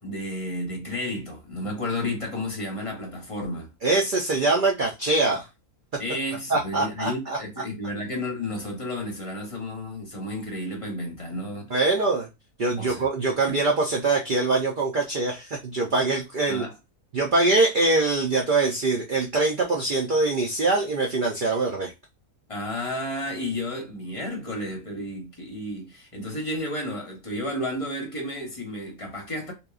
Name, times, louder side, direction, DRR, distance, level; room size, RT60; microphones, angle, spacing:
voice 1, 0.0-3.7 6.0-11.8 12.8-13.1 13.5-13.6 16.5-16.7 22.5-29.5, left 1 dB, 30° left, 0.7 m, -32 dB
voice 2, 3.8-5.5 6.5-7.4 11.7-12.3 12.6-16.6 17.1-21.9, right 3 dB, 75° right, 0.4 m, -23 dB
2.9 x 2.2 x 2.3 m
omnidirectional pair, 1.5 m